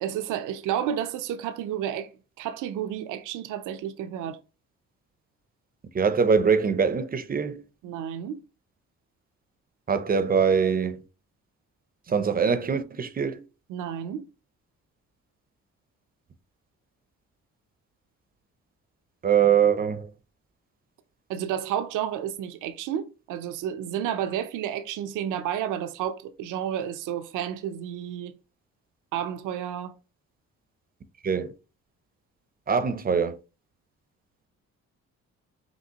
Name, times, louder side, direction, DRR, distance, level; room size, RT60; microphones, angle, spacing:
voice 1, 0.0-2.1 2.4-4.4 7.8-8.4 13.7-14.3 21.3-28.4 29.1-30.0, right 10 dB, 85° right, 0.5 m, -31 dB
voice 2, 5.9-7.6 9.9-11.0 12.1-13.4 19.2-20.1 31.2-31.5 32.7-33.4, right 6 dB, 30° right, 0.5 m, -23 dB
5.3 x 2.8 x 2.8 m
cardioid pair, 90°, 30 cm